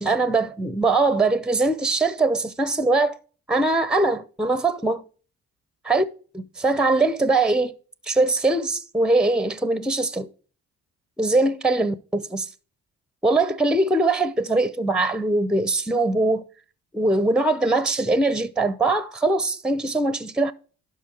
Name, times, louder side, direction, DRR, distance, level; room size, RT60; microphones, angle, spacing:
voice 1, 0.0-3.2 3.5-5.0 5.8-6.0 6.3-7.7 8.1-10.3 11.2-12.5 13.2-16.5 16.9-20.5, right 2 dB, 5° right, 0.7 m, -22 dB
11.5 x 5.3 x 4.4 m
cardioid pair, 90°, 30 cm